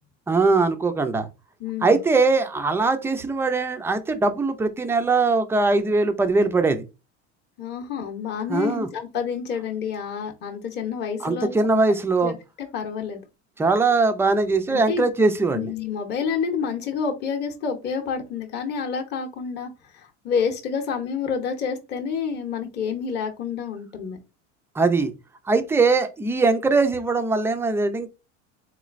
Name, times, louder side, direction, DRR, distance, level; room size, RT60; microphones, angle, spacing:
voice 1, 0.3-1.3 1.8-6.8 8.5-8.9 11.2-12.3 13.6-15.7 24.8-25.1 25.5-28.1, right 3 dB, 10° right, 0.3 m, -21 dB
voice 2, 1.6-2.0 7.6-11.6 12.2-13.2 14.7-15.0 15.5-24.2, left 6 dB, 30° left, 0.8 m, -29 dB
3.8 x 3.1 x 2.4 m
supercardioid pair, 125°, 34 cm